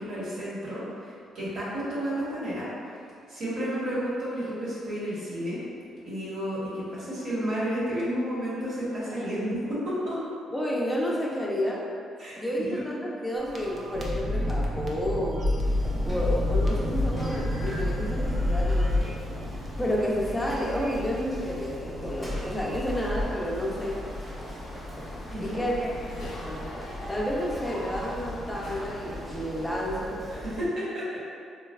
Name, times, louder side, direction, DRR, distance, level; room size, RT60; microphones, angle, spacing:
voice 1, 0.0-2.7 3.3-5.6 6.0-10.2 12.2-12.8 25.3-25.7 30.3-31.1, equal, 70° right, -9 dB, 1.2 m, -31 dB
voice 2, 3.6-3.9 10.5-11.9 12.4-15.5 16.0-19.2 19.8-24.0 25.4-30.2, equal, 10° left, -4 dB, 0.4 m, -31 dB
sound 1, 13.4-23.2, left 1 dB, 40° right, 0.5 m, -29 dB
sound 2, 15.6-30.7, left 1 dB, 10° right, 0.8 m, -41 dB
sound 3, 22.5-30.1, left 1 dB, 80° left, 0.6 m, -41 dB
3.9 x 2.1 x 2.2 m, 2.3 s
cardioid pair, 90°, 0 cm